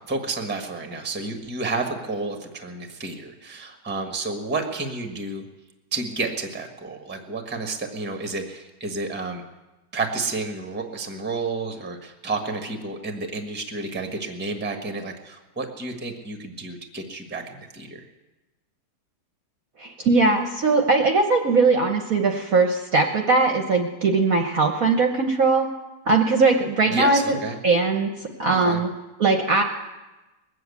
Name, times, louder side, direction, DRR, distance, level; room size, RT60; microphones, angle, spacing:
voice 1, 0.1-5.4 5.9-9.4 9.9-18.0 26.9-27.6 28.5-28.8, right 3 dB, 5° right, 5 dB, 1.0 m, -31 dB
voice 2, 19.8-25.7 26.1-28.1 28.4-28.9 29.2-29.6, right 3 dB, 55° right, 4 dB, 1.1 m, -20 dB
20.5 x 7.8 x 8.3 m, 1.1 s
omnidirectional pair, 2.3 m